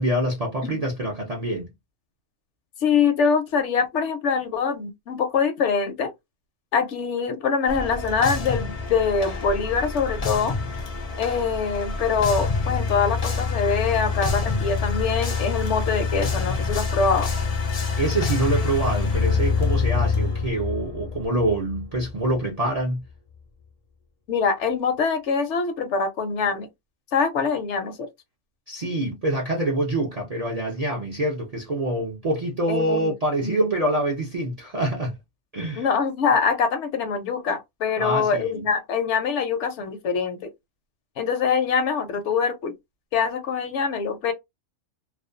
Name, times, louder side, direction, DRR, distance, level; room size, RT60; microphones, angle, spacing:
voice 1, 0.0-1.7 18.0-23.0 28.7-35.2 35.5-35.9 38.0-38.6, right 1 dB, 50° right, 0.4 m, -25 dB
voice 2, 2.8-6.1 6.7-10.6 11.2-17.3 24.3-26.7 27.1-28.1 32.7-33.1 33.4-33.7 35.8-40.5 41.2-42.7 43.1-44.3, left 5 dB, 70° left, 0.9 m, -24 dB
sound 1, 7.7-22.4, left 4 dB, 55° left, 0.4 m, -26 dB
2.4 x 2.2 x 2.4 m
omnidirectional pair, 1.3 m